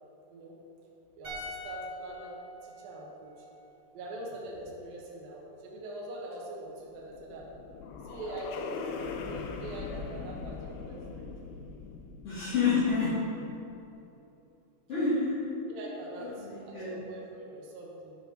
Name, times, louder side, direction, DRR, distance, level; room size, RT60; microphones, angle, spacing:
sound 1, 1.2-4.5 4.7-4.9, equal, 40° right, 2.5 m, -45 dB
voice 1, 1.2-3.5 3.9-7.5 8.0-11.3 15.7-18.2, right 1 dB, 70° right, -3 dB, 2.8 m, -43 dB
sound 2, 6.8-13.3, left 5 dB, 80° left, 2.5 m, -41 dB
voice 2, 12.2-13.1 14.9-15.5 16.2-16.9, left 4 dB, 45° left, -13 dB, 2.6 m, -28 dB
10.0 x 6.0 x 5.0 m, 2.8 s
omnidirectional pair, 4.6 m